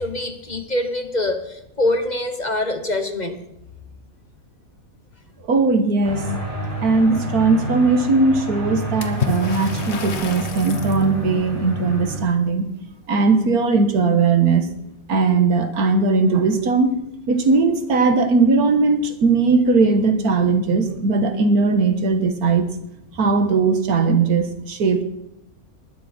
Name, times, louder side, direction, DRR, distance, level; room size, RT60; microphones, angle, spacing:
voice 1, 0.0-3.4, left 1 dB, 30° left, 7 dB, 1.2 m, -24 dB
voice 2, 5.5-6.2 6.8-12.7 13.1-14.7 15.1-17.0 17.3-22.7 23.2-25.0, right 4 dB, 85° right, 8 dB, 1.9 m, -18 dB
sound 1, 6.0-12.2, right 1 dB, 50° right, 5.1 m, -29 dB
Water / Splash splatter, 9.0-11.1, left 6 dB, 50° left, 1.5 m, -29 dB
19.5 x 12.5 x 4.4 m, 0.84 s
omnidirectional pair, 1.5 m